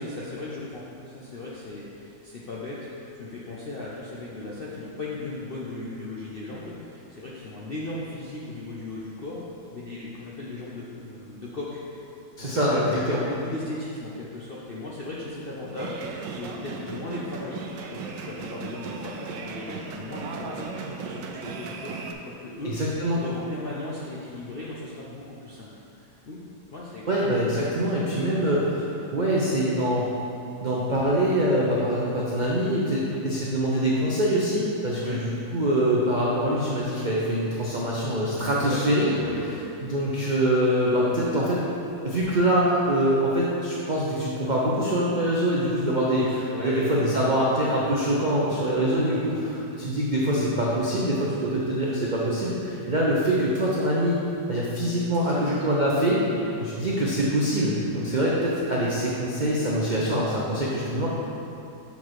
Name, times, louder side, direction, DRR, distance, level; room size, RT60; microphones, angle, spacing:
voice 1, 0.0-11.8 12.4-12.8 13.1-22.8 23.2-25.7 26.0-26.4 26.7-27.6 28.3-28.9 33.0-33.2 34.9-35.2 38.6-38.8 39.1-39.7 46.0-47.1 49.3-49.6 55.3-55.6 56.2-56.5, left 2 dB, 65° left, -6 dB, 0.5 m, -37 dB
voice 2, 12.4-13.2 22.6-23.2 27.1-30.1 30.6-39.1 39.8-41.6 42.0-46.2 46.6-54.2 54.5-56.2 56.6-61.1, right 1 dB, 65° right, -6 dB, 0.4 m, -24 dB
sound 1, 15.7-22.1, right 5 dB, 90° right, 1.2 m, -36 dB
7.0 x 4.0 x 4.7 m, 2.7 s
omnidirectional pair, 1.9 m